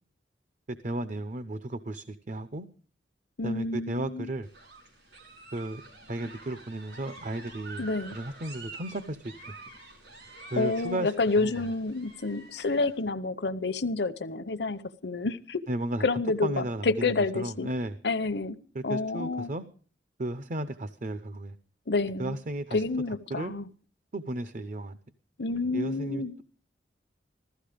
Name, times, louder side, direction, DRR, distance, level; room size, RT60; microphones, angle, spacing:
voice 1, 0.8-2.7 3.4-4.5 5.5-5.8 6.1-7.8 8.1-9.5 10.5-11.7 15.7-18.0 18.7-19.6 20.2-21.6 22.2-22.8 23.3-23.5 24.1-25.0 25.7-26.4, right 1 dB, 45° right, 0.7 m, -34 dB
voice 2, 3.4-4.3 7.8-8.2 10.6-15.6 16.0-17.7 18.0-18.5 18.8-19.5 21.9-22.4 22.7-23.7 25.4-26.3, left 3 dB, 65° left, 0.8 m, -29 dB
sound 1, 4.4-13.0, right 3 dB, 75° right, 5.1 m, -48 dB
15.5 x 13.5 x 5.1 m
head